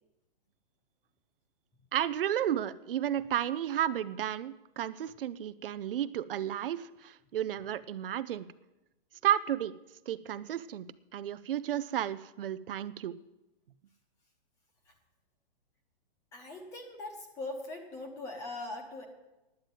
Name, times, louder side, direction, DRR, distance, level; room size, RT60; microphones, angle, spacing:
voice 1, 1.9-8.5 9.2-9.8 10.1-13.2, right 10 dB, 70° right, 14 dB, 0.6 m, -32 dB
voice 2, 16.3-19.1, left 2 dB, 10° left, 3 dB, 1.0 m, -41 dB
9.5 x 8.9 x 9.2 m, 0.99 s
hypercardioid pair, 180°, 29 cm